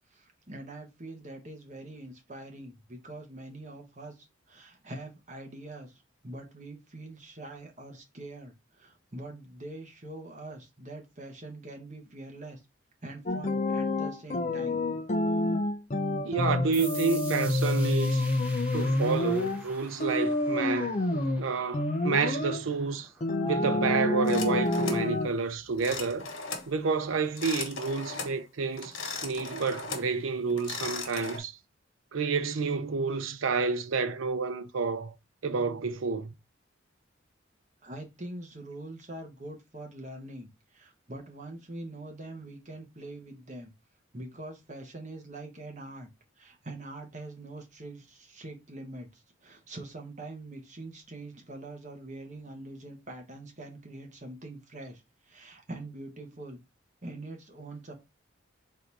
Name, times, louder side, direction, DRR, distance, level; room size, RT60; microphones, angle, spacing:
voice 1, 0.1-12.6 13.0-14.8 37.8-43.7 44.1-46.1 46.4-56.6 57.0-57.9, right 2 dB, 35° right, 1.1 m, -44 dB
sound 1, 13.3-19.7 20.0-21.5 21.7-22.6 23.2-25.3, left 2 dB, 35° left, 0.5 m, -28 dB
voice 2, 16.2-18.2 18.7-23.1 23.4-26.3 26.7-28.9 29.2-31.6 32.1-35.1 35.4-36.3, right 4 dB, 85° right, 0.6 m, -29 dB
sound 2, 16.7-24.1, right 1 dB, 5° right, 0.7 m, -47 dB
rotary phone, 24.3-25.1 25.8-26.7 27.3-28.4 28.8-30.1 30.5-31.4, left 4 dB, 85° left, 1.2 m, -38 dB
3.8 x 2.7 x 4.5 m
head